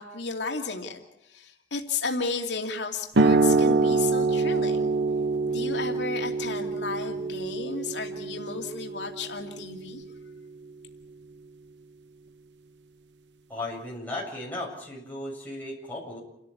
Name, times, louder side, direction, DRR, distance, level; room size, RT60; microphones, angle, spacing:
voice 1, 0.0-4.9 5.5-10.0, left 4 dB, 90° left, 2 dB, 2.6 m, -33 dB
sound 1, 3.2-10.3, right 3 dB, 85° right, 0.9 m, -26 dB
voice 2, 13.5-16.2, left 1 dB, 10° left, -3 dB, 7.7 m, -36 dB
29.0 x 13.5 x 8.7 m, 0.84 s
head